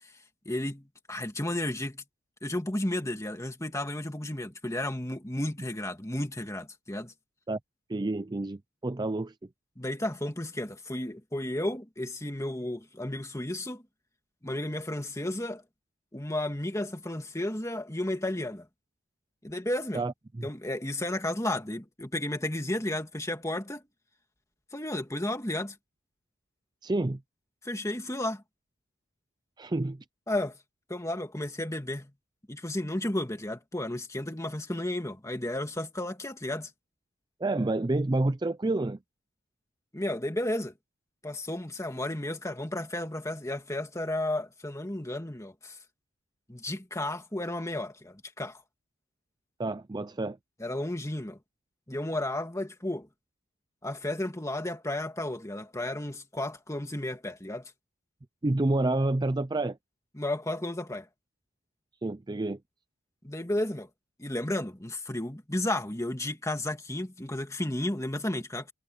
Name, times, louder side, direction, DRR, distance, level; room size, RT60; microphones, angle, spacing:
voice 1, 0.5-2.0 2.4-7.1 9.8-13.8 14.4-15.6 16.1-18.7 19.4-20.0 20.4-23.8 24.7-25.8 27.6-28.4 30.3-30.6 30.9-32.1 32.5-36.7 39.9-40.7 41.2-45.8 46.5-48.6 50.6-51.4 51.9-53.1 53.8-57.7 60.1-61.1 63.2-63.9 64.2-68.7, left 1 dB, 15° left, 2.1 m, -33 dB
voice 2, 7.9-9.3 19.9-20.4 26.8-27.2 29.6-30.0 37.4-39.0 49.6-50.4 58.4-59.8 62.0-62.6, right 2 dB, 20° right, 0.4 m, -29 dB
head